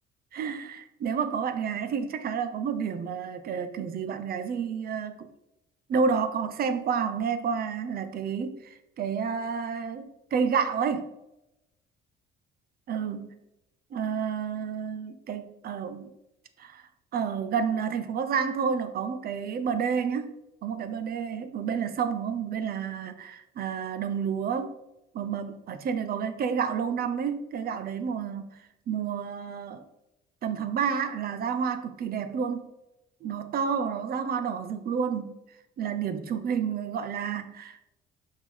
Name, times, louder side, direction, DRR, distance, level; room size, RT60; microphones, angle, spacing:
voice 1, 0.3-5.3 5.9-11.1 12.9-13.4 13.9-16.1 16.6-16.8 17.1-20.4 20.6-24.8 25.1-28.6 28.9-29.8 30.4-32.7 33.2-35.4 35.8-37.8, right 6 dB, 50° right, 10 dB, 0.8 m, -30 dB
6.2 x 3.7 x 5.4 m, 0.90 s
cardioid pair, 130°, 20 cm